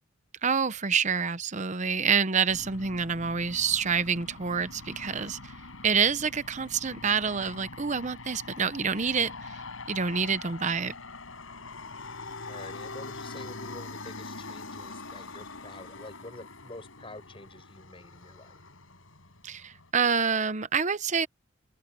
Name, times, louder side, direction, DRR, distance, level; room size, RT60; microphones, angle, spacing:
voice 1, 0.4-5.5 5.8-9.3 9.9-10.9 19.4-21.3, right 6 dB, 35° right, 0.8 m, -27 dB
Aircraft, 2.5-19.9, left 3 dB, 85° left, 5.8 m, -44 dB
Bowed string instrument, 11.9-16.5, left 3 dB, 60° left, 7.9 m, -50 dB
voice 2, 12.4-18.6, left 2 dB, 25° left, 6.9 m, -47 dB
open air
head